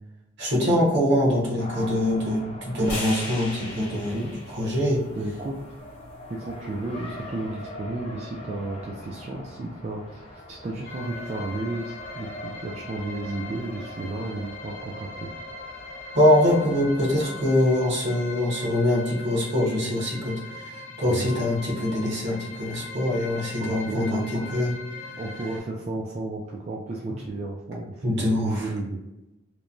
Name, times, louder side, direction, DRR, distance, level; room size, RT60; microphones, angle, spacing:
voice 1, 0.4-4.3 4.5-5.0 16.1-24.7 28.0-28.7, left 1 dB, 60° right, -4 dB, 1.0 m, -23 dB
Race car auto racing, 1.6-17.4, left 1 dB, 30° left, 0.5 m, -43 dB
sound 1, 2.8-7.0, left 2 dB, 45° left, 1.0 m, -38 dB
voice 2, 3.9-4.3 5.1-5.6 6.3-15.3 21.0-21.4 23.6-24.6 25.2-29.0, right 2 dB, 35° right, -2 dB, 0.3 m, -33 dB
sound 2, 10.9-25.6, left 3 dB, 70° left, 0.6 m, -40 dB
3.0 x 2.2 x 2.5 m, 0.95 s
head